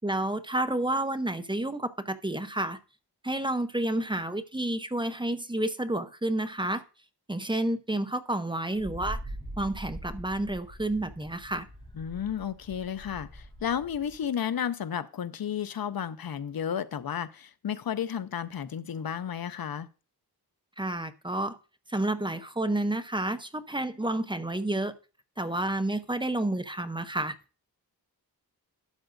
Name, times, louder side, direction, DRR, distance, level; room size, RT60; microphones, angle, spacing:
voice 1, 0.0-2.8 3.2-6.8 7.3-9.2 9.6-11.7 20.8-21.6 21.9-24.9 25.4-27.3, right 1 dB, 10° right, 0.7 m, -30 dB
Wind, 8.7-14.2, right 1 dB, 15° left, 5.7 m, -42 dB
voice 2, 11.9-19.9, left 8 dB, 65° left, 0.6 m, -32 dB
12.5 x 7.8 x 2.6 m
wide cardioid pair, 115°, 39 cm